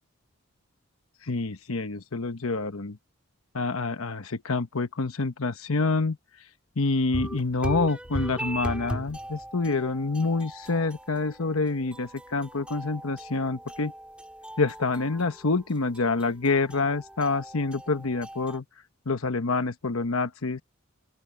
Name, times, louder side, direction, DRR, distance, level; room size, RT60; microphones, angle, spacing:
voice 1, 1.2-3.0 3.5-6.2 6.8-13.9 14.6-18.6 19.1-20.6, left 3 dB, 80° left, 1.1 m, -27 dB
sound 1, 7.1-18.6, equal, 5° right, 2.6 m, -39 dB
open air
head